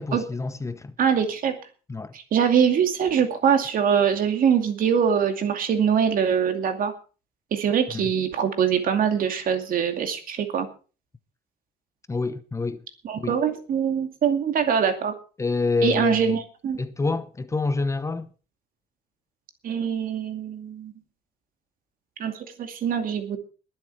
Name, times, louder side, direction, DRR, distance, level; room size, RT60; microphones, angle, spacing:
voice 1, 0.0-0.9 1.9-2.1 7.9-8.1 12.1-12.8 13.2-13.4 15.4-16.4 16.8-18.3, left 3 dB, 15° left, 0.9 m, -27 dB
voice 2, 1.0-1.5 2.1-6.9 7.5-10.7 13.0-15.1 15.8-16.8 19.6-20.9 22.2-23.4, right 7 dB, 55° right, 2.5 m, -23 dB
21.0 x 7.6 x 4.8 m
cardioid pair, 110°, 17 cm